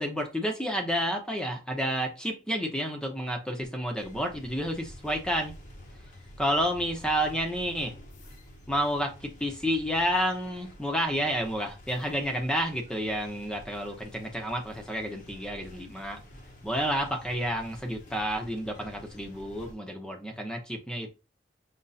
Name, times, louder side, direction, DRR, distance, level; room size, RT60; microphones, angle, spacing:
voice 1, 0.0-5.5 5.9-6.1 6.4-7.9 8.7-16.2 16.6-21.1, equal, 5° left, 0.8 m, -30 dB
sound 1, 4.0-19.7, equal, 45° left, 0.9 m, -49 dB
5.5 x 3.0 x 2.6 m
head